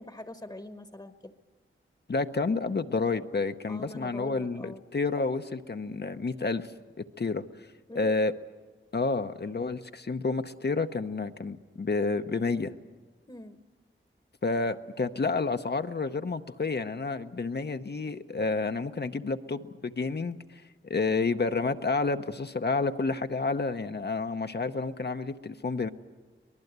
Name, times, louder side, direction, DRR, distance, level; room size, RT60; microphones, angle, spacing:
voice 1, 0.0-1.3 3.7-4.8 7.9-8.1 13.3-13.6, left 1 dB, 20° left, 7 dB, 1.1 m, -43 dB
voice 2, 2.1-6.7 7.2-7.4 8.0-8.3 8.9-12.7 14.4-25.9, left 3 dB, 55° left, 8 dB, 0.8 m, -30 dB
24.5 x 19.5 x 8.1 m, 1.4 s
wide cardioid pair, 70°, 21 cm